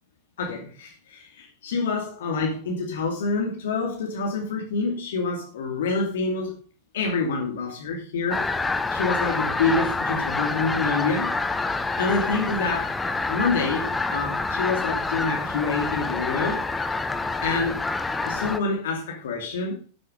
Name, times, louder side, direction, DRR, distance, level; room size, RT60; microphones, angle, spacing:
voice 1, 0.4-6.5 6.9-8.5 8.9-11.3 12.0-12.9 13.3-16.6 17.4-17.8 18.2-19.8, left 4 dB, 60° left, 1 dB, 2.7 m, -27 dB
sound 1, 8.3-18.6, left 3 dB, 10° left, 1.2 m, -27 dB
11.0 x 9.8 x 5.3 m, 0.37 s
figure-of-eight pair, 90°, 0 cm